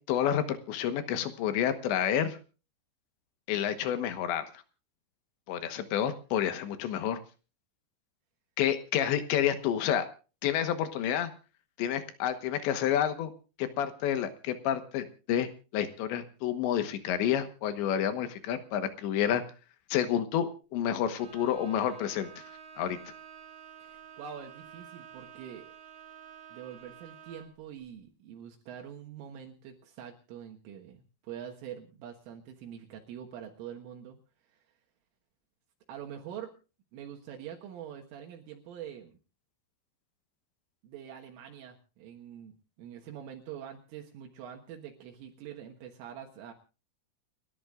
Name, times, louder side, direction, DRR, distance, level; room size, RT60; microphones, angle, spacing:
voice 1, 0.0-2.4 3.5-4.4 5.5-7.2 8.6-10.1 10.4-11.3 11.8-13.3 13.6-15.5 15.7-19.4 19.9-22.3 22.8-23.0, left 10 dB, 70° left, 10 dB, 3.1 m, -29 dB
Bowed string instrument, 21.1-27.6, right 8 dB, 55° right, 3.6 m, -50 dB
voice 2, 23.8-25.7 26.5-34.2 34.5-34.6 35.9-36.5 36.9-39.2 40.8-46.5, right 9 dB, 75° right, 1 dB, 3.8 m, -45 dB
29.5 x 12.5 x 2.4 m, 0.34 s
omnidirectional pair, 5.9 m